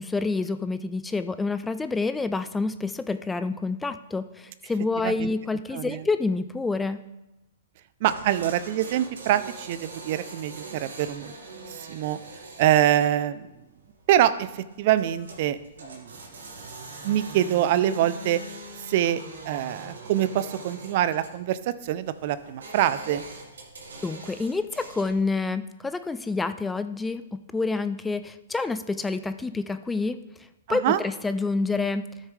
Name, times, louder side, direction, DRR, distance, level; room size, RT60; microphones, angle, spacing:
voice 1, 0.0-7.0 24.0-30.2 30.7-32.1, left 3 dB, 10° left, 11 dB, 0.4 m, -28 dB
voice 2, 5.7-6.0 8.0-11.3 11.7-12.2 12.6-13.5 14.1-16.1 17.0-18.4 18.9-23.2 30.7-31.0, right 12 dB, 50° right, 14 dB, 0.5 m, -25 dB
sound 1, 8.0-25.2, right 3 dB, 85° right, 1.9 m, -43 dB
13.0 x 6.4 x 3.3 m, 0.97 s
hypercardioid pair, 130°, 0 cm